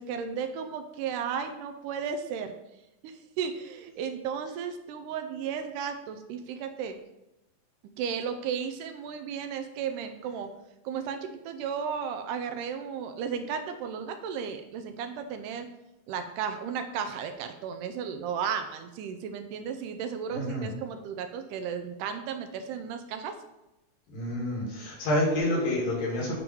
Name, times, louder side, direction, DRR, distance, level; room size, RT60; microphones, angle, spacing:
voice 1, 0.0-2.5 3.0-7.0 8.0-10.5 10.9-15.7 16.1-23.3, right 7 dB, 80° right, 7 dB, 2.0 m, -34 dB
voice 2, 20.3-20.7 24.1-26.4, left 1 dB, 70° left, -3 dB, 4.0 m, -28 dB
9.2 x 3.9 x 4.5 m, 0.91 s
omnidirectional pair, 4.1 m